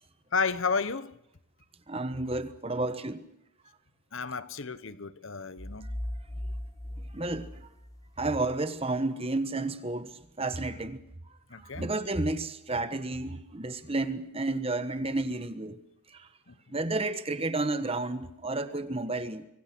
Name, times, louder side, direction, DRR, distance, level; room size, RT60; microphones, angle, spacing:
voice 1, 0.3-1.1 4.1-5.9 11.5-11.9 16.5-16.6, left 5 dB, 60° left, 1.0 m, -32 dB
voice 2, 1.9-3.2 7.1-7.5 8.2-11.0 11.5-15.8 16.1-16.3 16.7-19.4, right 2 dB, 25° right, 1.2 m, -31 dB
sound 1, 5.6-8.4, left 1 dB, 15° left, 1.0 m, -38 dB
25.0 x 23.5 x 6.2 m
head